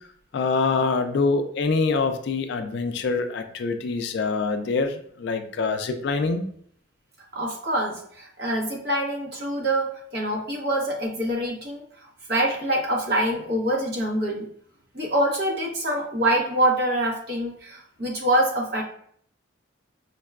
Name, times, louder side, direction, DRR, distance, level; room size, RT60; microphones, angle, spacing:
voice 1, 0.3-6.4, left 4 dB, 55° left, 7 dB, 0.3 m, -25 dB
voice 2, 7.3-14.5 14.9-18.8, right 1 dB, 50° right, -2 dB, 0.9 m, -25 dB
5.2 x 2.2 x 2.3 m, 0.63 s
head